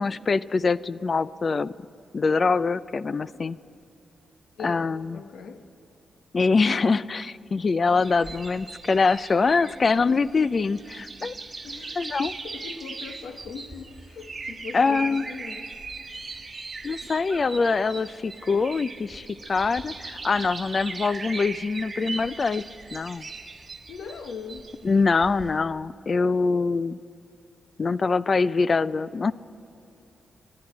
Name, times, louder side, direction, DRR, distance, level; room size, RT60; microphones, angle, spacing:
voice 1, 0.0-1.7 2.1-3.6 4.6-5.2 6.3-11.3 12.0-12.4 14.7-15.3 16.8-22.6 22.9-23.3 24.8-27.0 27.8-29.3, left 4 dB, 35° left, 17 dB, 0.4 m, -24 dB
voice 2, 4.6-5.7 11.6-12.0 12.4-15.7 23.9-24.7, left 6 dB, 85° left, 8 dB, 1.2 m, -40 dB
sound 1, 8.0-25.6, right 3 dB, 30° right, 1.3 m, -39 dB
29.0 x 10.5 x 9.6 m, 2.6 s
wide cardioid pair, 135°, 0 cm